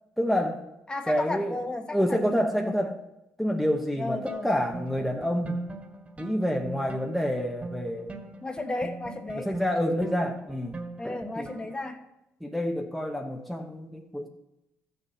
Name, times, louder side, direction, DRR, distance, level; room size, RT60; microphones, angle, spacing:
voice 1, 0.2-0.6 1.1-1.6 1.9-2.9 3.4-5.6 6.2-8.2 9.4-10.8 11.0-11.5 12.4-14.3, equal, ahead, 1 dB, 1.1 m, -28 dB
voice 2, 0.9-3.0 4.0-4.5 8.4-9.5 11.0-12.0, left 2 dB, 20° left, 5 dB, 1.3 m, -34 dB
sound 1, 4.3-11.9, right 3 dB, 25° right, 1.6 m, -42 dB
13.5 x 6.8 x 7.7 m, 0.89 s
cardioid pair, 110°, 5 cm